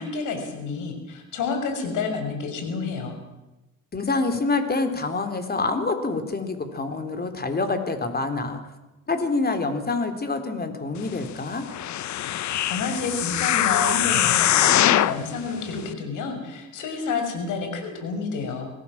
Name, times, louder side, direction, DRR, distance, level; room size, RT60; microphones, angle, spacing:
voice 1, 0.0-3.2 12.7-18.7, left 4 dB, 85° left, 5 dB, 6.1 m, -29 dB
voice 2, 3.9-8.6 9.1-11.6, left 3 dB, 30° left, 7 dB, 4.0 m, -26 dB
sound 1, 11.7-15.2 15.8-15.9, left 12 dB, 70° left, 1.0 m, -22 dB
25.5 x 17.5 x 7.4 m, 1.0 s
cardioid pair, 90°, 30 cm